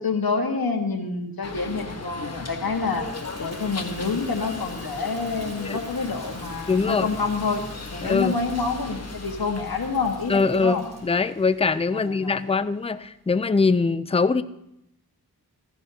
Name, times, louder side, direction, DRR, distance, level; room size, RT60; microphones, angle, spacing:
voice 1, 0.0-3.0 3.4-7.6 7.9-10.8 11.9-12.3, left 4 dB, 70° left, 3 dB, 1.6 m, -27 dB
sound 1, 1.4-12.6, left 3 dB, 40° left, 1.3 m, -38 dB
Toilet flush, 2.5-11.1, right 1 dB, 70° right, 2.8 m, -46 dB
voice 2, 6.7-7.1 8.0-8.3 10.3-14.4, left 4 dB, 15° left, 13 dB, 0.4 m, -22 dB
15.5 x 14.0 x 2.8 m, 0.80 s
wide cardioid pair, 60°, 38 cm